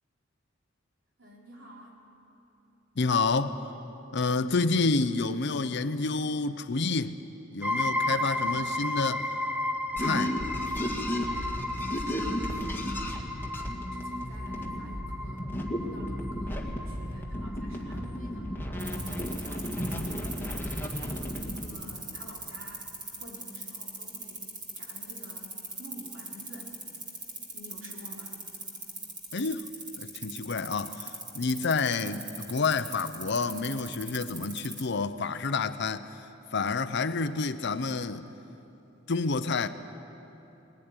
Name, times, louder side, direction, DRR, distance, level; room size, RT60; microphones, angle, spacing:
voice 1, 1.2-2.0 11.1-11.4 11.8-12.5 12.8-13.4 13.8-20.1 21.4-22.9 23.2-26.8 27.5-28.4, equal, 75° right, -3 dB, 4.2 m, -49 dB
voice 2, 3.0-3.6 4.1-7.2 7.5-9.3 10.0-10.4 29.3-29.7 30.0-38.3 39.1-39.7, left 4 dB, 60° left, 11 dB, 0.8 m, -29 dB
sound 1, 7.6-19.1, left 1 dB, 5° right, 0.7 m, -34 dB
sound 2, 10.0-21.7, equal, 10° left, 1.9 m, -34 dB
sound 3, 18.8-34.9, right 3 dB, 25° right, 2.3 m, -40 dB
20.0 x 16.0 x 9.8 m, 3.0 s
head